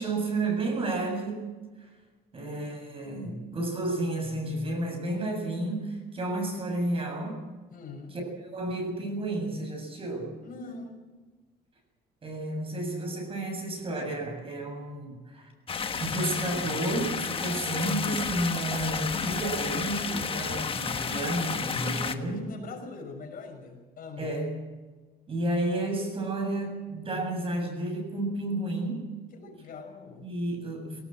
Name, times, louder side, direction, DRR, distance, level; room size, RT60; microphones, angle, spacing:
voice 1, 0.0-1.5 1.8-1.9 2.3-7.4 8.1-10.3 10.6-10.7 12.2-15.5 16.0-22.5 24.2-24.6 25.3-29.1 30.2-31.0, right 2 dB, 35° right, 3 dB, 7.5 m, -31 dB
voice 2, 7.7-8.2 10.4-11.0 22.1-24.3 29.3-30.3, left 3 dB, 55° left, 3 dB, 6.3 m, -43 dB
sound 1, 15.7-22.2, left 6 dB, 35° left, 1.3 m, -31 dB
19.5 x 18.5 x 7.7 m, 1.3 s
cardioid pair, 110°, 17 cm